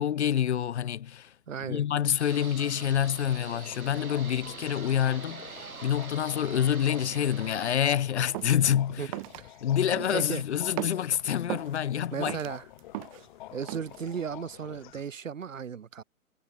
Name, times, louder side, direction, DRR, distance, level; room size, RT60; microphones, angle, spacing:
voice 1, 0.0-1.3 1.6-9.1 9.6-12.4, left 9 dB, 50° left, 1.2 m, -27 dB
voice 2, 1.5-1.9 9.0-9.1 9.4-9.6 10.1-10.4 12.1-12.6 13.5-16.0, right 7 dB, 65° right, 3.5 m, -35 dB
sound 1, 2.2-7.8, right 4 dB, 85° right, 2.7 m, -43 dB
sound 2, 3.3-15.0, left 16 dB, 35° left, 1.9 m, -49 dB
sound 3, 8.3-8.6 9.1-9.4 9.9-10.3 10.7-11.8 12.2-13.3 13.7-14.0, right 22 dB, 25° right, 1.0 m, -37 dB
figure-of-eight pair, 130°, 42 cm